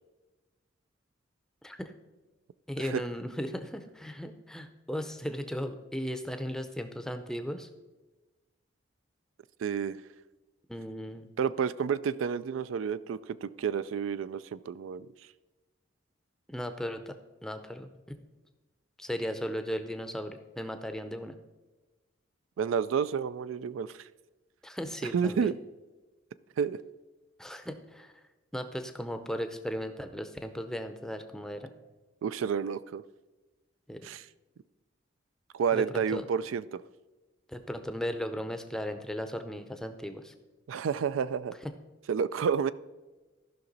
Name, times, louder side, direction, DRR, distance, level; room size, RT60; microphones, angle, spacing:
voice 1, 2.7-7.7 10.7-11.3 16.5-17.2 17.4-17.9 19.0-21.3 24.6-25.5 27.4-28.1 28.5-31.7 33.9-34.1 35.7-36.2 37.5-40.3 41.6-41.7, equal, 5° left, 8 dB, 0.5 m, -36 dB
voice 2, 9.6-10.0 11.4-15.1 22.6-24.1 25.0-25.6 26.6-26.8 32.2-33.0 34.0-34.3 35.5-36.8 40.7-41.5 42.1-42.7, right 6 dB, 85° right, 16 dB, 0.3 m, -30 dB
14.5 x 5.8 x 4.0 m, 1.2 s
head